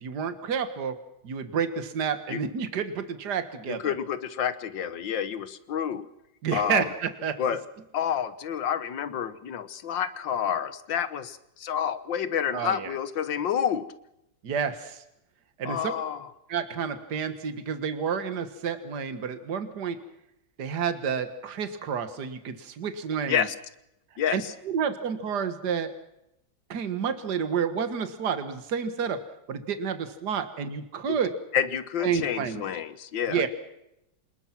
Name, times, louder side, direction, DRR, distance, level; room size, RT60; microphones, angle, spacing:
voice 1, 0.0-1.0 1.2-3.9 6.4-7.4 12.5-12.9 14.4-15.0 15.6-15.9 16.5-20.0 20.6-23.5 24.3-25.9 26.7-29.2 29.5-31.3 32.0-32.6 33.3-33.5, right 7 dB, 60° right, 10 dB, 2.1 m, -30 dB
voice 2, 3.7-6.1 6.5-6.9 7.4-7.6 7.9-13.9 15.7-16.3 23.3-23.6 24.2-24.5 31.1-31.2 31.5-33.5, left 8 dB, 80° left, 14 dB, 1.9 m, -29 dB
26.5 x 21.0 x 6.0 m, 0.84 s
omnidirectional pair, 2.0 m